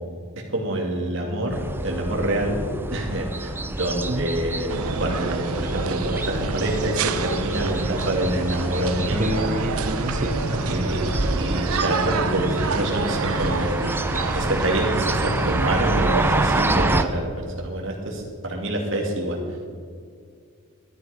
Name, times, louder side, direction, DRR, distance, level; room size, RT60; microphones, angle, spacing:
voice 1, 0.5-2.6 2.9-4.7 5.0-9.5 10.6-11.1 11.3-13.7 14.3-19.4, right 1 dB, 60° right, -1 dB, 2.5 m, -26 dB
sound 1, 1.5-17.0, right 2 dB, 10° right, 0.4 m, -28 dB
sound 2, 4.7-17.1, right 4 dB, 85° right, 0.8 m, -28 dB
voice 2, 9.1-10.8 11.4-11.5, right 1 dB, 35° right, 9 dB, 0.7 m, -28 dB
13.0 x 11.5 x 5.0 m, 2.1 s
head